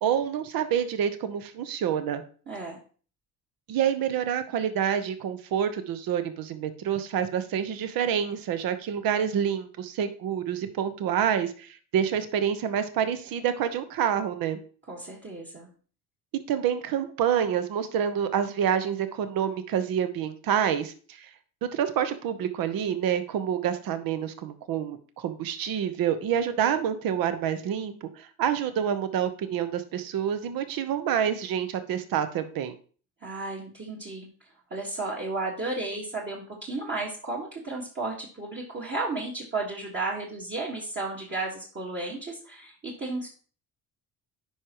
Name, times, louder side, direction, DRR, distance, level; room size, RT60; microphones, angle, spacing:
voice 1, 0.0-2.2 3.7-14.6 16.5-21.3 21.6-32.7, right 9 dB, 65° right, 10 dB, 0.9 m, -27 dB
voice 2, 2.5-2.8 14.9-15.7 33.2-34.3 34.7-43.3, right 2 dB, 30° right, -4 dB, 1.6 m, -33 dB
10.0 x 5.0 x 3.0 m, 0.41 s
cardioid pair, 95°, 38 cm